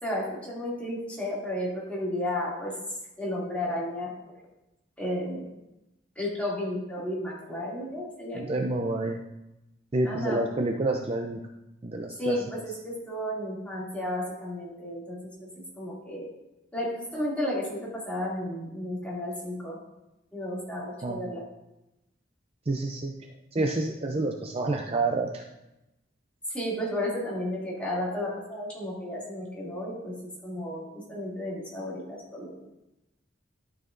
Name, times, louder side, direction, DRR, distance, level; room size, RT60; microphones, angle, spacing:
voice 1, 0.0-2.7 3.2-4.1 5.0-5.5 6.2-8.5 10.0-10.4 12.2-15.5 15.8-16.3 16.7-19.8 20.3-21.4 26.5-30.2 30.4-32.7, left 1 dB, 5° left, -7 dB, 2.5 m, -33 dB
voice 2, 8.4-9.2 9.9-11.4 11.8-12.3 21.0-21.2 22.7-23.1 23.5-25.4, right 2 dB, 30° right, 2 dB, 0.5 m, -28 dB
12.0 x 6.2 x 2.6 m, 0.93 s
head